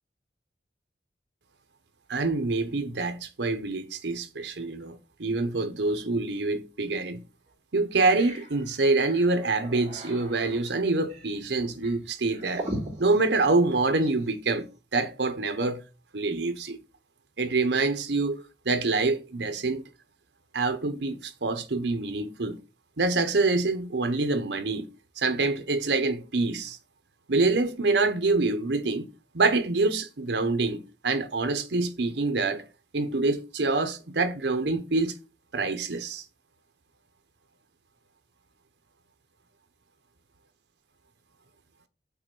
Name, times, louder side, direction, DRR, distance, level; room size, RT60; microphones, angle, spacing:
voice 1, 2.1-7.2 7.7-12.7 13.0-14.7 14.9-15.8 16.1-16.8 17.4-19.8 20.5-22.6 23.0-24.9 25.2-26.8 27.3-29.1 29.3-32.6 32.9-35.1 35.5-36.2, right 3 dB, 80° right, 0.9 m, -26 dB
sound 1, 6.9-7.0 7.5-7.6 7.9-14.3, right 1 dB, 35° right, 2.7 m, -40 dB
5.8 x 3.8 x 6.0 m
head